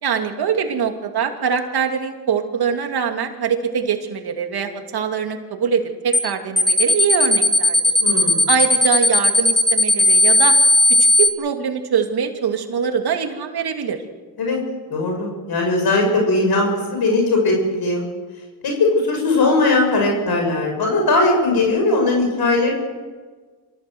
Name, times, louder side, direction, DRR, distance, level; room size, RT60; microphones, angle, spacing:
voice 1, 0.0-7.8 8.5-10.5 11.0-14.0, right 7 dB, 65° right, 5 dB, 2.7 m, -23 dB
sound 1, 6.1-6.3 6.6-11.3, left 1 dB, ahead, 2.1 m, -15 dB
voice 2, 8.0-8.5 14.4-14.6 14.9-18.0 18.6-22.7, left 2 dB, 60° left, 1 dB, 6.4 m, -19 dB
26.0 x 15.5 x 8.0 m, 1.4 s
cardioid pair, 85°, 41 cm